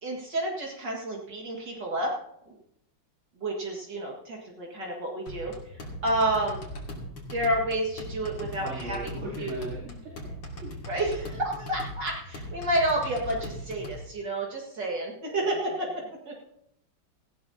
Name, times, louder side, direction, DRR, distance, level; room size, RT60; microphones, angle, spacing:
voice 1, 0.0-2.1 2.5-2.6 3.4-6.6 7.3-9.0 9.4-9.7 10.9-16.3, right 1 dB, 60° right, -2 dB, 2.5 m, -30 dB
sound 1, 5.3-14.0, equal, 70° left, 3.2 m, -39 dB
voice 2, 8.4-10.1 10.6-10.8, right 1 dB, 80° right, -6 dB, 4.2 m, -39 dB
18.0 x 15.0 x 2.8 m, 0.76 s
omnidirectional pair, 2.2 m